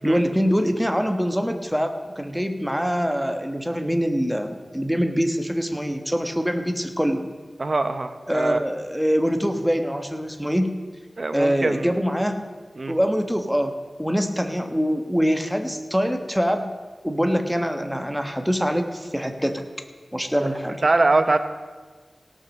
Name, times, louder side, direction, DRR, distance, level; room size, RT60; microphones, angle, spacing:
voice 1, 0.0-7.3 8.3-10.7 11.3-12.4 12.9-13.7 14.0-16.7 17.0-19.6 20.1-20.8, equal, ahead, 6 dB, 1.2 m, -24 dB
voice 2, 7.6-8.6 11.2-11.9 12.8-12.9 20.8-21.4, right 2 dB, 55° right, 9 dB, 0.9 m, -22 dB
17.0 x 6.3 x 6.4 m, 1.5 s
wide cardioid pair, 65°, 0 cm